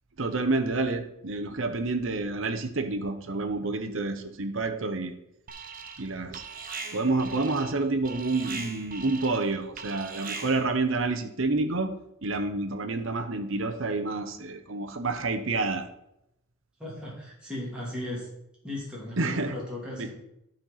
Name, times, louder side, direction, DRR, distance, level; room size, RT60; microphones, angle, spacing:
voice 1, 0.2-5.1 6.0-6.4 6.9-11.9 12.2-15.9 19.2-19.5 20.0-20.1, right 3 dB, 70° right, 7 dB, 1.0 m, -28 dB
Alarm, 5.5-6.1 6.3-10.8, right 4 dB, 45° right, 0.9 m, -40 dB
voice 2, 16.8-18.3 18.6-20.1, left 1 dB, 5° right, -6 dB, 3.1 m, -36 dB
11.5 x 4.5 x 5.7 m, 0.82 s
head